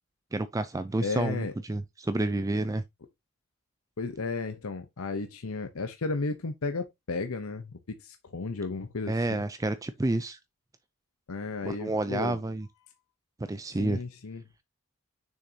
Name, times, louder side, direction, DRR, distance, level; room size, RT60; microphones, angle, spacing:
voice 1, 0.3-2.8 9.1-10.4 11.6-12.7 13.4-14.0, right 2 dB, 15° right, 0.4 m, -29 dB
voice 2, 1.0-1.5 4.0-7.7 8.0-9.4 11.3-12.4 13.8-14.4, left 3 dB, 85° left, 0.8 m, -34 dB
6.6 x 6.4 x 2.8 m
head